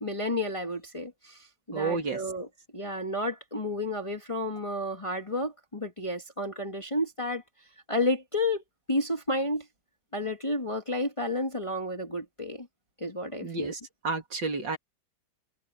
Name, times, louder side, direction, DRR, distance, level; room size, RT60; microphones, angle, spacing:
voice 1, 0.0-2.5 2.7-7.4 7.9-9.7 10.1-12.7 13.0-13.7, left 1 dB, 15° left, 1.7 m, -31 dB
voice 2, 1.7-2.2 13.4-14.8, right 4 dB, 65° right, 3.5 m, -31 dB
omnidirectional pair, 2.1 m